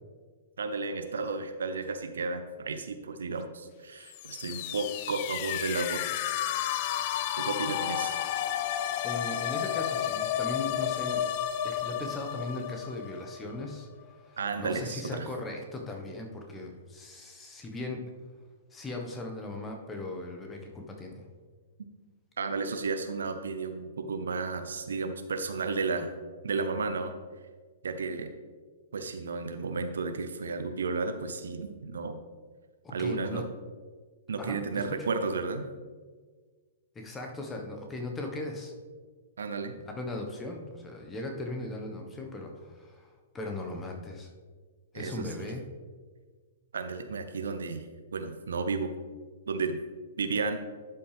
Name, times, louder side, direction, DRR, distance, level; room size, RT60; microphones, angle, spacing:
voice 1, 0.6-6.3 7.4-8.3 14.4-15.3 22.4-26.1 26.4-27.1 27.8-28.3 28.9-32.2 32.9-33.4 34.3-35.6 39.4-39.8 44.9-45.5 46.7-47.8 48.1-48.9 49.5-49.8 50.2-50.6, right 4 dB, 70° right, 8 dB, 0.7 m, -33 dB
sound 1, 4.1-13.8, left 11 dB, 45° left, 0.4 m, -32 dB
voice 2, 9.0-11.4 11.6-18.0 18.7-21.3 32.8-33.4 34.4-34.8 36.9-38.7 39.8-44.3 44.9-45.6, left 2 dB, 15° left, 2 dB, 1.3 m, -38 dB
11.5 x 5.5 x 3.4 m, 1.5 s
figure-of-eight pair, 110°, 0 cm